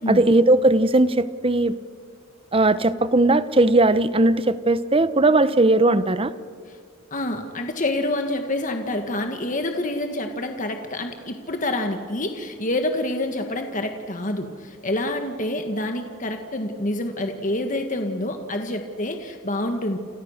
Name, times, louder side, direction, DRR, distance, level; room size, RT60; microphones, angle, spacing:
voice 1, 0.1-1.7 2.5-6.3, right 2 dB, 25° right, 14 dB, 0.9 m, -18 dB
voice 2, 7.1-20.0, left 1 dB, 40° left, 5 dB, 1.7 m, -27 dB
29.5 x 29.0 x 6.6 m, 2.1 s
head